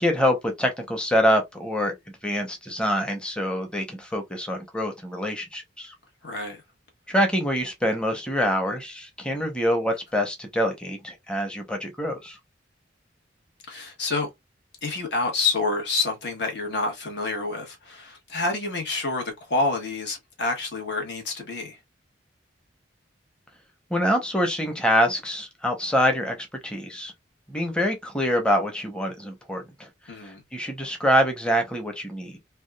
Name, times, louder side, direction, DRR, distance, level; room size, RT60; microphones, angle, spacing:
voice 1, 0.0-1.9 2.2-5.9 7.1-12.4 23.9-27.1 27.5-29.9 30.2-32.4, equal, 5° left, 0.8 m, -25 dB
voice 2, 6.2-6.6 13.7-14.3 14.8-21.8 30.1-30.4, left 3 dB, 65° left, 1.3 m, -28 dB
3.5 x 2.4 x 2.3 m
head